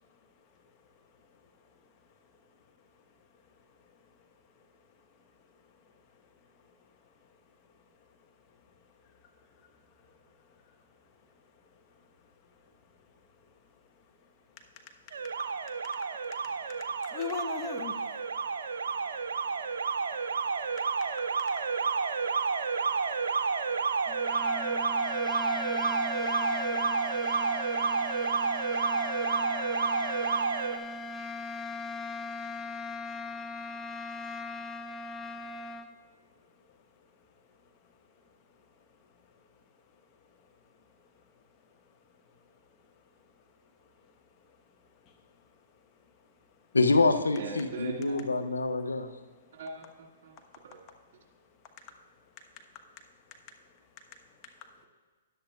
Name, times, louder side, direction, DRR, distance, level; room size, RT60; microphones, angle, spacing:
voice 1, 0.0-7.7 8.0-14.3 15.9-20.4 20.7-26.6 26.9-44.6 45.0-46.7 49.4-49.6 50.4-51.9 52.2-54.9, left 6 dB, 30° left, 3 dB, 1.0 m, -52 dB
Alarm, 15.1-30.8, right 5 dB, 75° right, 0.5 m, -30 dB
sound 1, 24.1-35.9, left 3 dB, 15° left, 0.5 m, -38 dB
voice 2, 46.7-49.1, left 3 dB, 85° left, 9 dB, 0.6 m, -26 dB
voice 3, 47.4-48.2 49.5-50.3 50.6-50.8, right 4 dB, 55° right, 1 dB, 1.9 m, -40 dB
13.5 x 10.0 x 2.3 m, 1.4 s
hypercardioid pair, 120°, 0 cm